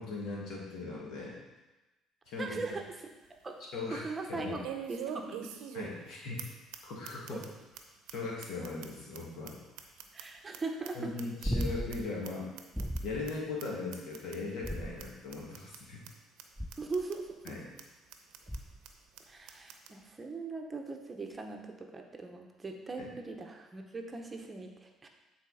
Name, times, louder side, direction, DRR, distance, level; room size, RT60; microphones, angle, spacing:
voice 1, 0.0-1.4 2.3-2.8 3.7-4.0 4.3-4.6 5.7-6.5 6.8-7.4 8.1-9.5 10.9-12.5 13.0-16.0 17.4-17.7 23.0-23.1, left 3 dB, 70° left, -3 dB, 2.1 m, -39 dB
sound 1, 2.3-2.4 2.8-2.9 4.6-6.1 6.4-6.5 6.7-6.8 7.0-7.5 7.7-7.8 8.1-8.2 8.4-10.6 10.8-12.0 12.2-12.3 12.6-13.0 13.3-13.4 13.6-13.7 13.9-14.4 14.7-14.8 15.0-15.1 15.3-15.8 16.0-16.1 16.4-16.5 16.7-17.2 17.5-17.6 17.8-17.9 18.1-18.6 18.8-18.9 19.2-19.3 19.5-19.9, right 9 dB, 90° right, 0.7 m, -43 dB
voice 2, 2.4-3.1 3.4-3.6 3.9-5.5 7.3-7.4 10.1-11.1 16.8-17.3 19.3-25.1, right 3 dB, 25° right, 3 dB, 0.8 m, -40 dB
sound 2, 11.4-12.1 12.7-13.3 14.6-15.3 16.6-17.0 18.5-18.9 21.3-21.4, equal, ahead, 0.4 m, -36 dB
9.0 x 4.1 x 4.2 m, 1.1 s
cardioid pair, 95°, 0 cm